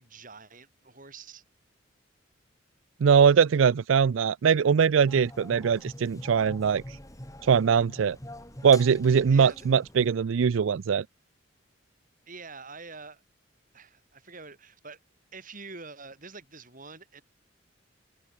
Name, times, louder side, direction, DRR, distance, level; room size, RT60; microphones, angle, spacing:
voice 1, 0.0-1.4 9.3-9.7 12.3-13.2 13.7-15.0 15.3-17.2, right 4 dB, 45° right, 6.8 m, -46 dB
voice 2, 3.0-6.8 7.4-8.2 8.6-11.0, right 6 dB, 80° right, 0.4 m, -21 dB
sound 1, 5.1-10.1, left 1 dB, 15° left, 4.4 m, -44 dB
open air
head